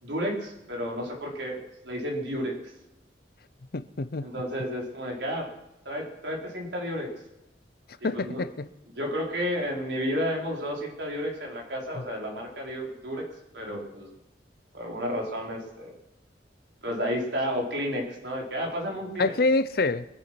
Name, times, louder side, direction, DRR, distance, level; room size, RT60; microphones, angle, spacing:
voice 1, 0.0-2.5 4.2-5.5 5.8-7.1 8.0-8.4 8.9-13.2 13.5-14.1 14.7-15.9 16.8-19.3, equal, 85° right, 4.2 m, -31 dB
voice 2, 3.7-4.3 8.0-8.7 19.2-20.0, left 3 dB, 60° left, 0.7 m, -26 dB
23.5 x 8.6 x 6.0 m
head